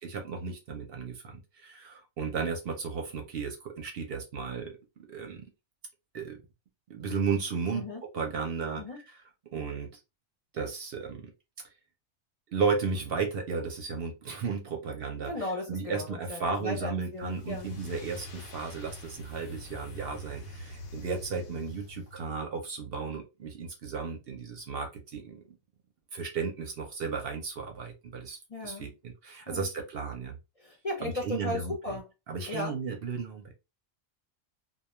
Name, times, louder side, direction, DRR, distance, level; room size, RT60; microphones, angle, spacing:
voice 1, 0.0-5.5 6.1-6.4 6.9-7.9 8.1-9.0 9.5-10.0 10.5-11.3 12.5-25.4 26.1-30.4 31.0-31.8 32.3-33.5, right 5 dB, 60° right, 4 dB, 0.7 m, -34 dB
voice 2, 15.3-17.7 28.5-28.9 29.5-29.7 30.6-32.0 32.5-32.8, left 2 dB, 40° left, -1 dB, 0.6 m, -36 dB
sound 1, 17.1-22.4, equal, 85° left, 0.9 m, -45 dB
2.2 x 2.2 x 3.0 m, 0.25 s
omnidirectional pair, 1.2 m